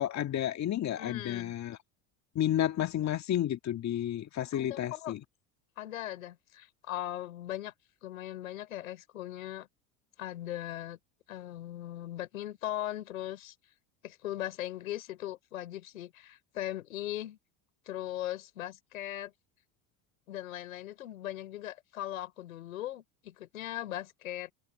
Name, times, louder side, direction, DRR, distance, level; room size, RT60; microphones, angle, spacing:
voice 1, 0.0-1.8 2.3-5.2, left 11 dB, 45° left, 1.7 m, -31 dB
voice 2, 0.9-1.5 4.5-5.1 5.8-7.7 8.0-9.7 10.2-11.0 11.3-13.5 14.0-17.4 17.9-19.3 20.3-24.5, left 13 dB, 90° left, 4.4 m, -39 dB
hypercardioid pair, 80°, 40 cm